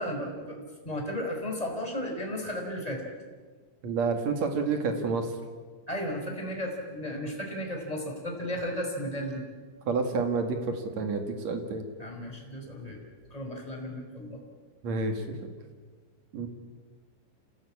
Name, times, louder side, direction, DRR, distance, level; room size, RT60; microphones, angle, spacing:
voice 1, 0.0-3.1 5.9-9.4 12.0-13.0 13.3-14.4, equal, 10° left, 0 dB, 4.0 m, -34 dB
voice 2, 3.8-5.3 9.9-11.9 14.8-15.4 16.3-16.5, right 4 dB, 50° right, 5 dB, 2.4 m, -29 dB
27.5 x 17.5 x 8.7 m, 1.5 s
omnidirectional pair, 5.7 m